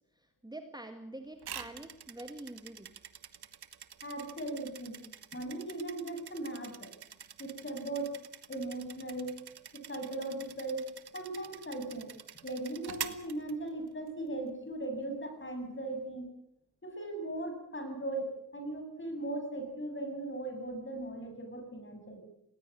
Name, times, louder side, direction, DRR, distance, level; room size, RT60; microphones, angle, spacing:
voice 1, 0.0-3.0, right 1 dB, 10° right, 6 dB, 1.9 m, -46 dB
sound 1, 1.4-14.1, right 8 dB, 70° right, 1.5 m, -47 dB
voice 2, 4.0-5.0 5.3-6.9 7.4-8.1 8.5-9.4 9.7-12.1 12.4-16.3 16.8-22.2, right 2 dB, 30° left, 5 dB, 7.3 m, -38 dB
19.5 x 19.5 x 8.6 m, 0.80 s
wide cardioid pair, 90°, 40 cm